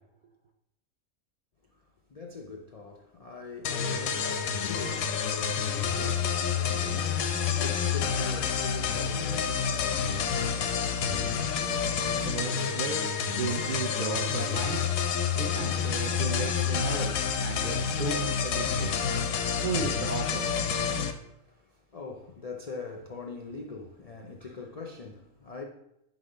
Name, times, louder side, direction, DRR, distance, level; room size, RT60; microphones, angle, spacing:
voice 1, 1.7-11.4 21.1-25.6, left 3 dB, 55° left, 0.4 m, -43 dB
sound 1, 3.6-21.1, left 7 dB, 85° left, 1.1 m, -29 dB
voice 2, 12.2-14.8 15.4-17.2 17.4-18.9 19.6-20.5, right 4 dB, 55° right, 0.6 m, -34 dB
6.1 x 4.1 x 5.0 m
omnidirectional pair, 1.4 m